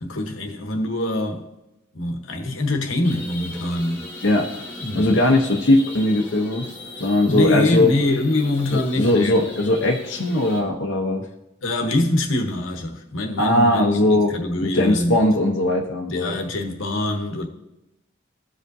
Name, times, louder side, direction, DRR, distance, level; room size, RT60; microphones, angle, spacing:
voice 1, 0.0-1.4 1.9-4.0 4.8-5.0 7.3-9.5 11.6-15.2 16.1-17.5, left 1 dB, 90° left, 1.1 m, -24 dB
sound 1, 3.0-10.6, left 1 dB, 10° left, 1.6 m, -38 dB
voice 2, 4.2-4.6 4.9-6.7 7.0-7.9 8.7-11.3 13.4-16.3, left 1 dB, 65° left, 0.8 m, -19 dB
14.5 x 5.0 x 2.7 m
head